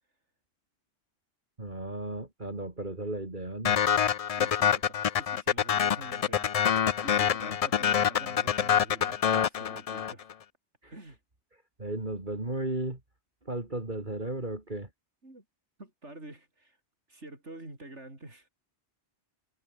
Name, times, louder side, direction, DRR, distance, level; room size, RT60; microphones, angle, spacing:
voice 1, 1.6-3.8 10.8-10.9 11.8-13.0 13.5-14.9, right 2 dB, 45° right, 3.7 m, -35 dB
sound 1, 3.6-10.3, left 8 dB, 55° left, 0.4 m, -26 dB
voice 2, 4.3-10.3 10.9-11.2 15.2-15.4 15.8-16.8 17.1-18.5, right 2 dB, 85° right, 6.1 m, -47 dB
omnidirectional pair, 1.2 m